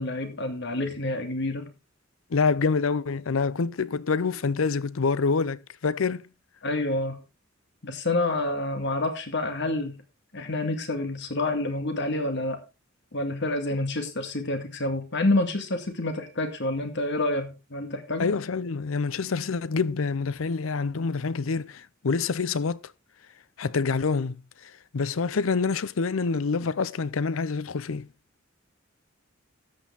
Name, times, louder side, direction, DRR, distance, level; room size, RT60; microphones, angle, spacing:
voice 1, 0.0-1.7 6.6-7.2 7.8-10.0 10.3-12.6 13.1-18.3, left 2 dB, 60° left, 2.1 m, -28 dB
voice 2, 2.3-6.3 18.2-22.8 23.6-24.4 24.6-28.1, left 4 dB, 85° left, 0.6 m, -26 dB
13.0 x 8.6 x 3.5 m
head